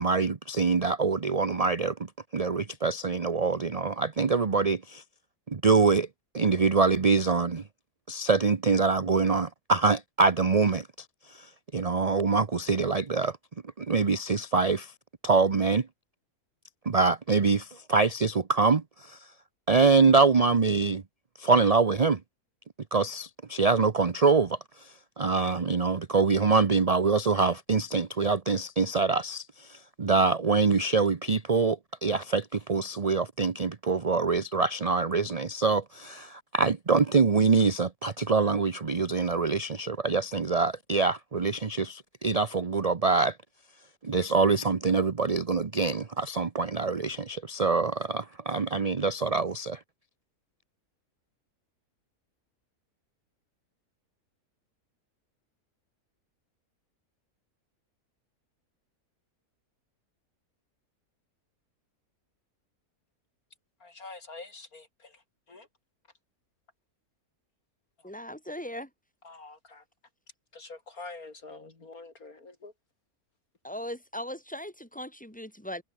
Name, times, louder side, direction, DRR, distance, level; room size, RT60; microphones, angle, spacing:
voice 1, 0.0-1.9 2.3-5.0 5.5-6.1 6.3-7.6 8.1-10.9 11.3-13.4 13.8-14.9 15.2-15.9 16.9-19.2 19.7-21.0 21.4-22.2 22.9-43.4 44.0-49.8, right 4 dB, 30° right, 0.8 m, -25 dB
voice 2, 63.8-65.7 68.0-68.1 69.2-69.8 70.5-72.7, left 3 dB, 70° left, 4.0 m, -46 dB
voice 3, 68.0-68.9 73.6-75.8, left 1 dB, 5° left, 4.9 m, -38 dB
omnidirectional pair, 1.6 m